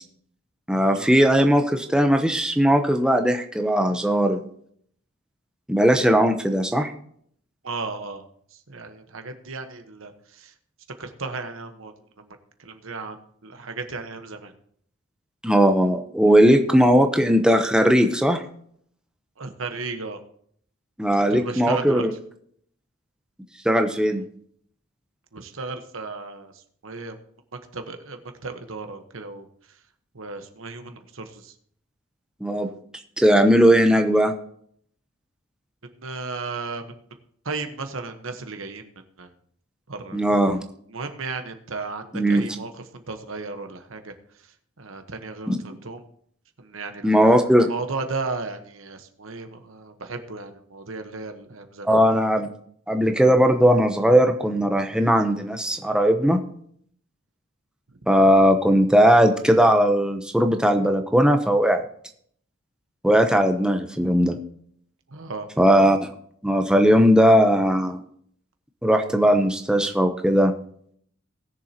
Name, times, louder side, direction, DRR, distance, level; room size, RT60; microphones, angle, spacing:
voice 1, 0.7-4.4 5.7-6.9 15.4-18.4 21.0-22.1 23.6-24.2 32.4-32.7 33.2-34.3 40.1-40.6 42.1-42.5 45.5-45.6 47.0-47.7 51.8-52.5 52.9-56.4 58.1-61.8 63.0-64.4 65.6-66.1 66.4-68.0 68.8-70.5, equal, 5° right, 5 dB, 0.8 m, -18 dB
voice 2, 7.6-8.3 8.7-10.5 11.0-14.5 19.4-20.2 21.2-22.1 25.3-26.5 26.8-27.2 27.7-29.5 30.1-31.5 35.9-37.0 37.4-38.9 39.2-39.3 39.9-40.2 40.9-44.1 44.8-46.0 46.6-47.1 47.7-52.0 65.1-65.5, right 3 dB, 75° right, 7 dB, 1.2 m, -35 dB
19.5 x 7.1 x 2.9 m, 0.63 s
head